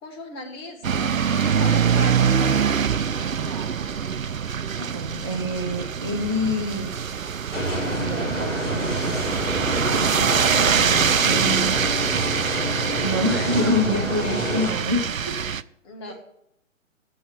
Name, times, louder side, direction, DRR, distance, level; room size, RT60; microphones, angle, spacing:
voice 1, 0.0-2.7 15.8-16.1, left 2 dB, 20° left, 3 dB, 1.5 m, -37 dB
sound 1, 0.8-15.6, right 7 dB, 85° right, 0.5 m, -24 dB
voice 2, 3.4-3.7 4.7-6.9 7.9-9.4 10.5-12.2 13.0-15.4 16.1-16.2, left 1 dB, 20° right, 1 dB, 0.5 m, -28 dB
sound 2, 7.5-14.7, equal, 70° left, 4.5 m, -28 dB
7.8 x 6.6 x 7.4 m, 0.76 s
figure-of-eight pair, 135°, 39 cm